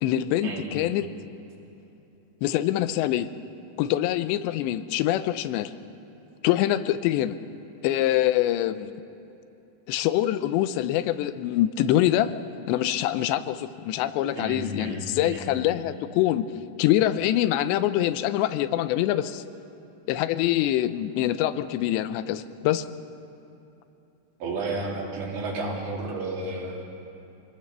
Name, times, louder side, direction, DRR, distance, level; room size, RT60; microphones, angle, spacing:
voice 1, 0.0-1.1 2.4-3.3 3.8-5.7 6.4-7.4 7.8-8.9 9.9-12.3 12.7-16.5 16.8-19.4 20.1-22.9, left 13 dB, 90° left, 13 dB, 2.9 m, -24 dB
voice 2, 14.4-15.4 24.4-26.8, right 2 dB, 85° right, -2 dB, 5.4 m, -32 dB
25.0 x 18.5 x 6.8 m, 2.9 s
omnidirectional pair, 4.9 m